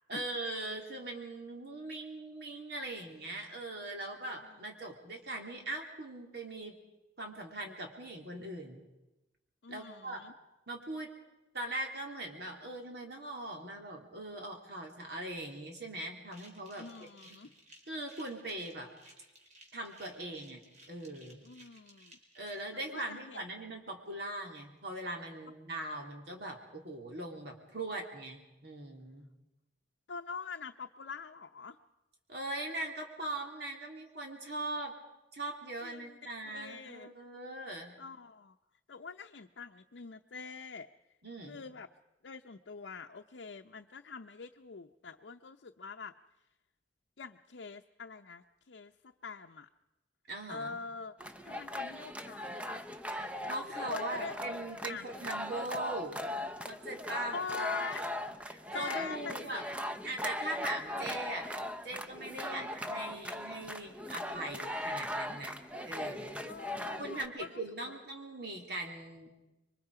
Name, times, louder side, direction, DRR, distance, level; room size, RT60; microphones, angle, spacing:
voice 1, 0.1-6.8 7.2-8.8 9.7-10.3 10.7-11.1 11.5-16.9 17.9-18.9 19.7-20.6 20.9-21.4 22.3-29.2 32.3-34.9 35.3-38.0 41.2-41.6 50.3-50.8 53.1-56.3 56.6-57.7 58.5-59.6 60.0-61.5 61.8-65.6 65.9-66.4 67.0-69.3, right 2 dB, 65° right, 1 dB, 3.3 m, -41 dB
voice 2, 9.6-10.3 16.7-17.5 21.4-22.2 22.7-23.4 30.1-31.8 35.8-36.2 36.4-37.1 38.0-38.5 38.9-40.9 41.5-41.9 42.2-46.1 47.2-49.7 50.5-51.1 51.4-52.8 53.8-54.3 54.9-55.1 57.3-58.1 58.7-59.6 62.3-62.7 66.4-67.6 67.9-68.0, left 5 dB, 80° left, 3 dB, 0.7 m, -44 dB
sound 1, 16.3-22.6, right 1 dB, 40° right, 4.3 m, -58 dB
sound 2, 51.2-67.3, left 1 dB, 5° right, 0.8 m, -39 dB
26.0 x 23.5 x 4.9 m, 0.99 s
head